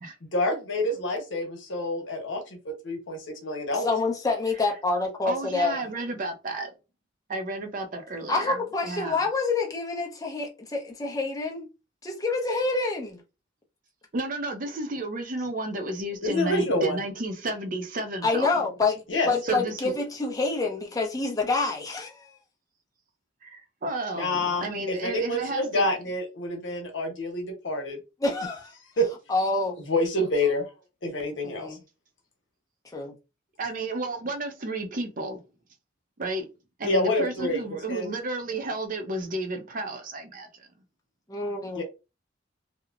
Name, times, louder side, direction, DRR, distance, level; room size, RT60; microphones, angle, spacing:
voice 1, 0.3-3.9 16.2-17.0 19.1-19.3 24.1-28.0 29.0-29.1 29.9-30.7 31.0-31.8 36.8-37.6 37.9-38.2 41.7-41.8, left 1 dB, 85° left, 1.0 m, -27 dB
voice 2, 3.7-5.8 8.3-11.7 12.0-13.2 18.2-19.0 19.3-22.3 28.2-28.7 29.3-29.8 31.4-31.8 32.9-33.1 41.3-41.8, left 3 dB, 20° left, 0.6 m, -27 dB
voice 3, 5.2-6.7 7.3-9.3 14.1-18.6 19.4-20.0 23.4-25.9 33.6-35.4 36.2-36.5 36.8-40.7, right 2 dB, 45° right, 0.5 m, -32 dB
2.8 x 2.0 x 2.4 m
head